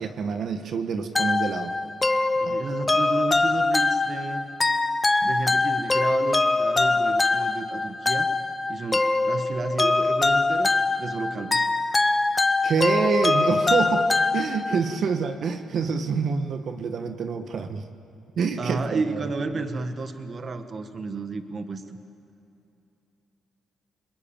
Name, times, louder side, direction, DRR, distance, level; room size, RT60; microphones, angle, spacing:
voice 1, 0.0-1.7 2.4-2.6 12.6-17.9 18.4-19.2 19.5-19.6, right 5 dB, 60° right, 7 dB, 1.6 m, -27 dB
sound 1, 1.2-15.0, left 3 dB, 20° left, 1.0 m, -23 dB
voice 2, 2.4-4.4 5.2-8.3 8.7-11.7 18.6-22.0, right 3 dB, 40° right, 8 dB, 1.6 m, -32 dB
29.0 x 21.0 x 9.0 m, 2.8 s
cardioid pair, 90°, 0 cm